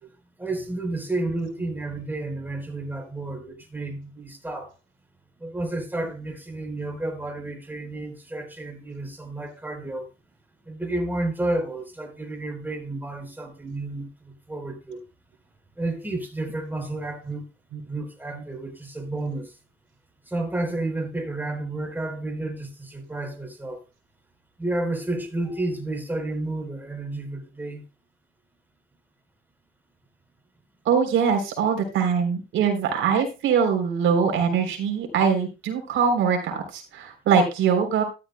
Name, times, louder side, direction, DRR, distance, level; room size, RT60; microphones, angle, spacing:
voice 1, 0.4-4.7 5.4-10.1 10.7-15.0 15.8-17.4 17.9-19.5 20.3-23.8 24.6-27.8, right 2 dB, 10° right, 4.0 m, -31 dB
voice 2, 30.8-38.0, right 6 dB, 85° right, 3.5 m, -22 dB
12.5 x 12.5 x 2.2 m
cardioid pair, 90°, 20 cm